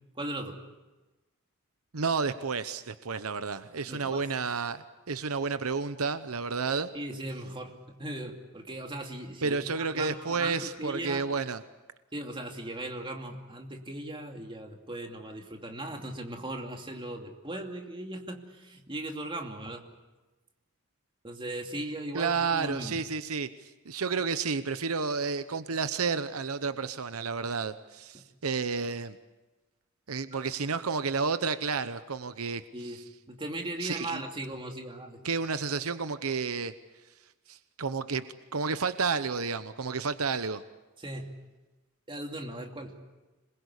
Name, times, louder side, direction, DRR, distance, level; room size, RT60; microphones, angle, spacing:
voice 1, 0.2-0.6 3.8-4.3 6.9-11.2 12.1-19.8 21.2-23.0 30.4-30.5 32.7-33.0 33.3-35.2 41.0-41.3 42.1-43.0, right 1 dB, 25° right, 2 dB, 2.7 m, -38 dB
voice 2, 1.9-6.9 9.4-11.6 22.1-29.2 30.1-33.0 33.8-34.2 35.2-36.7 37.5-38.2 38.5-40.6, right 5 dB, 80° right, 12 dB, 0.9 m, -31 dB
27.0 x 21.5 x 8.4 m, 1.1 s
head